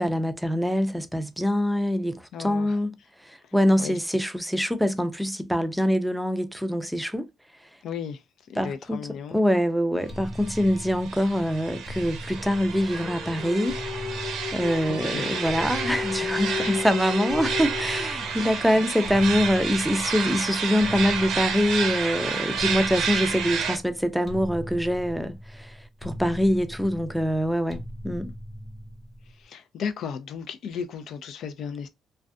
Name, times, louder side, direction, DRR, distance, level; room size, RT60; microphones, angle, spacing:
voice 1, 0.0-2.9 3.2-7.3 8.6-9.1 9.3-13.8 14.5-28.3, equal, ahead, 0.4 m, -24 dB
voice 2, 2.3-2.8 3.4-3.5 3.8-4.0 7.8-9.4 14.9-15.4 16.6-16.8 18.3-18.9 29.3-31.9, left 7 dB, 75° left, 0.4 m, -35 dB
sound 1, 10.1-29.4, equal, 15° left, 0.9 m, -40 dB
sound 2, 10.4-23.8, right 6 dB, 85° right, 0.6 m, -31 dB
sound 3, 12.3-18.6, left 6 dB, 55° left, 0.9 m, -34 dB
2.4 x 2.2 x 2.3 m
cardioid pair, 90°, 0 cm